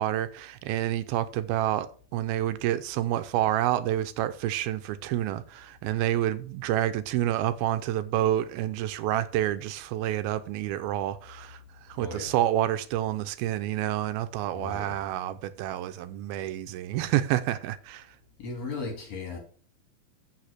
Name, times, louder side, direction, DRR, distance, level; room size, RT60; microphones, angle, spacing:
voice 1, 0.0-11.6 11.9-18.1, right 13 dB, 85° right, 2.5 m, -28 dB
voice 2, 12.0-12.4 14.5-15.0 18.4-19.4, left 4 dB, 45° left, 3.6 m, -36 dB
8.4 x 5.8 x 6.1 m
omnidirectional pair, 4.3 m